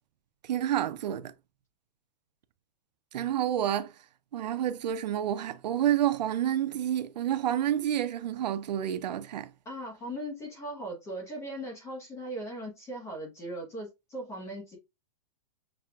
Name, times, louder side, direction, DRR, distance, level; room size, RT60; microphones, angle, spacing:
voice 1, 0.5-1.3 3.1-3.9 4.3-9.5, right 11 dB, 90° right, 0.5 m, -29 dB
voice 2, 9.6-14.8, right 1 dB, 15° left, 0.8 m, -39 dB
5.9 x 2.4 x 2.3 m
hypercardioid pair, 160°, 21 cm